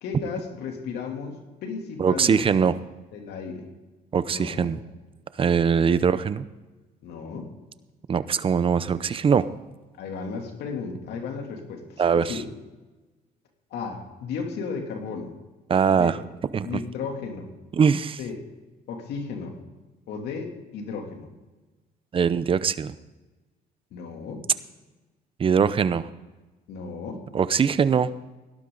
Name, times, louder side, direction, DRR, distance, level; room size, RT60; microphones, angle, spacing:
voice 1, 0.0-2.5 3.1-3.7 4.3-4.7 7.0-7.5 10.0-12.5 13.7-15.3 15.9-16.2 16.6-17.5 18.2-18.3 18.9-19.6 20.1-21.3 23.9-24.4 26.7-27.2, left 5 dB, 75° left, 2 dB, 2.9 m, -34 dB
voice 2, 2.0-2.8 4.1-4.8 5.4-6.4 8.1-9.5 12.0-12.4 15.7-16.2 16.5-16.8 17.7-18.2 22.1-22.9 25.4-26.1 27.3-28.1, right 6 dB, 30° right, 15 dB, 0.7 m, -22 dB
18.0 x 12.0 x 3.9 m, 1.2 s
cardioid pair, 110°, 17 cm